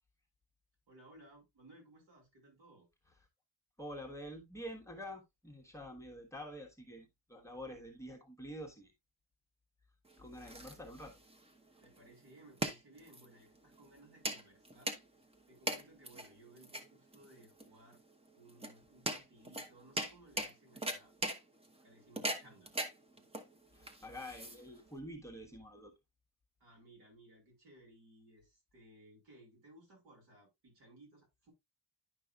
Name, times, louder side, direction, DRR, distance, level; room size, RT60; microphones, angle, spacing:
voice 1, 0.9-2.9 11.8-15.0 15.5-18.0 18.3-21.1 21.8-22.7 26.6-31.5, right 1 dB, 70° right, 5.2 m, -60 dB
voice 2, 3.8-8.9 10.2-11.2 23.7-25.9, equal, 5° left, 1.3 m, -47 dB
sound 1, 10.1-25.0, right 1 dB, 15° right, 0.9 m, -42 dB
10.5 x 5.4 x 2.4 m
cardioid pair, 140°, 39 cm